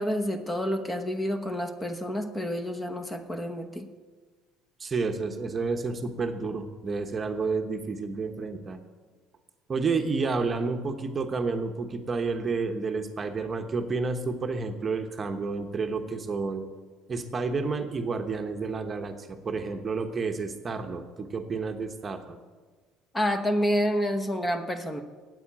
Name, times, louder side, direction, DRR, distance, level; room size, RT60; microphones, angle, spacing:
voice 1, 0.0-3.8 23.1-25.0, equal, 15° left, 7 dB, 1.0 m, -28 dB
voice 2, 4.8-8.8 9.7-16.6 17.1-22.4, right 4 dB, 25° right, 6 dB, 1.0 m, -30 dB
8.8 x 8.3 x 8.7 m, 1.4 s
cardioid pair, 120°, 0 cm